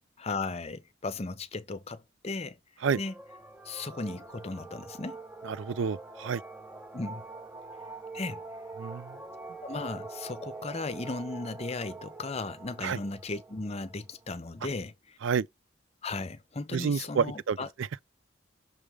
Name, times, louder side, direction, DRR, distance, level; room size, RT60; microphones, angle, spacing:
voice 1, 0.2-2.6 3.0-3.1 3.6-5.2 6.9-7.2 8.1-8.4 9.6-15.2 16.0-17.7, left 3 dB, 35° left, 0.7 m, -36 dB
sound 1, 2.9-14.7, right 3 dB, 10° right, 0.8 m, -45 dB
voice 2, 5.4-6.4 8.8-9.1 12.8-13.0 15.2-15.5 16.7-18.0, right 6 dB, 75° right, 0.4 m, -29 dB
6.3 x 3.4 x 4.8 m
head